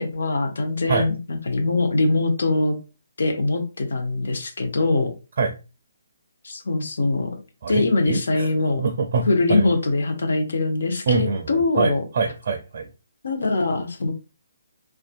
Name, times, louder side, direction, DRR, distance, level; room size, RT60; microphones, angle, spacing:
voice 1, 0.0-2.8 3.2-5.1 6.4-7.4 7.7-8.8 9.3-12.0 13.2-14.1, left 2 dB, 70° left, 5 dB, 0.6 m, -22 dB
voice 2, 7.6-8.5 8.8-9.7 11.1-12.9, right 4 dB, 55° right, 4 dB, 0.4 m, -25 dB
2.5 x 2.3 x 2.5 m, 0.31 s
hypercardioid pair, 150°, 0 cm